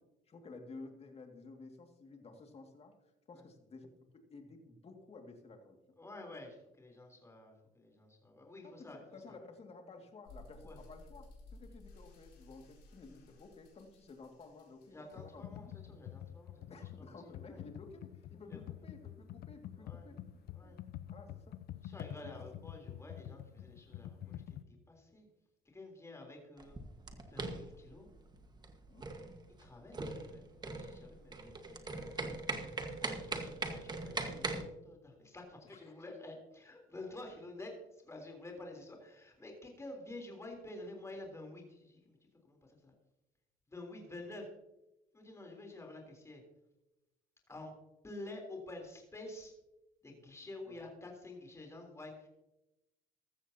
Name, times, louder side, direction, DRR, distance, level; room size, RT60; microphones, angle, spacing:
voice 1, 0.3-2.9 3.3-3.9 4.1-5.8 8.6-11.2 11.5-15.7 16.7-20.2 20.6-20.7 21.1-21.6 22.2-22.4 28.9-29.1 35.7-36.0 50.7-50.8, left 3 dB, 35° left, 4 dB, 2.2 m, -53 dB
voice 2, 6.0-9.4 10.6-10.8 14.9-16.6 17.5-17.6 18.5-18.6 19.8-20.1 20.5-20.8 21.8-25.3 25.7-26.8 27.3-28.1 29.6-31.6 31.9-42.2 42.4-42.9 43.7-44.5 45.1-46.4 47.5-47.7 48.0-49.5 50.0-52.3, left 2 dB, 15° left, 1 dB, 3.6 m, -50 dB
sound 1, 10.3-16.4, left 2 dB, 90° left, 4.3 m, -57 dB
Computer keyboard, 15.1-24.6, left 11 dB, 65° left, 0.6 m, -47 dB
sound 2, 26.6-34.6, right 3 dB, 25° right, 1.5 m, -41 dB
15.0 x 13.5 x 2.8 m, 0.94 s
cardioid pair, 110°, 17 cm